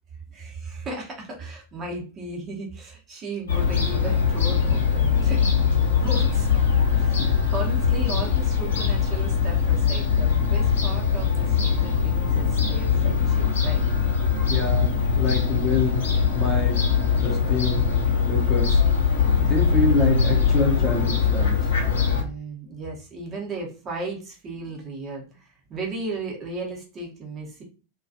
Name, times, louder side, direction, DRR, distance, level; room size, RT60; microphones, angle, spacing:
voice 1, 0.3-6.5 6.9-13.9 22.1-27.6, right 2 dB, 25° right, -1 dB, 0.8 m, -35 dB
Fowl / Gull seagull, 3.5-22.2, left 6 dB, 65° left, 0.8 m, -21 dB
voice 2, 14.5-16.8 17.1-17.9 18.3-18.8 19.4-21.7, left 3 dB, 25° left, 0 dB, 0.6 m, -27 dB
2.3 x 2.2 x 2.5 m, 0.34 s
figure-of-eight pair, 90°, 0 cm